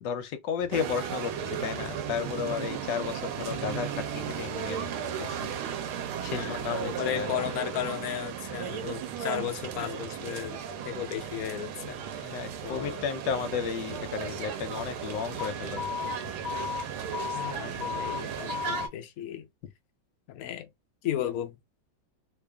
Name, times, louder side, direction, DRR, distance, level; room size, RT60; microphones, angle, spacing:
voice 1, 0.0-4.9 5.2-5.6 6.2-7.3 11.8-16.1, left 7 dB, 70° left, 1.2 m, -34 dB
sound 1, 0.6-5.6, left 4 dB, 20° left, 1.2 m, -53 dB
sound 2, 0.7-18.9, right 8 dB, 85° right, 1.6 m, -35 dB
voice 2, 6.3-12.3 12.6-13.0 17.3-19.5 20.3-20.7 21.0-21.6, left 11 dB, 90° left, 0.7 m, -35 dB
Alarm, 15.4-18.9, left 7 dB, 45° left, 1.4 m, -35 dB
3.4 x 2.4 x 3.4 m
omnidirectional pair, 2.3 m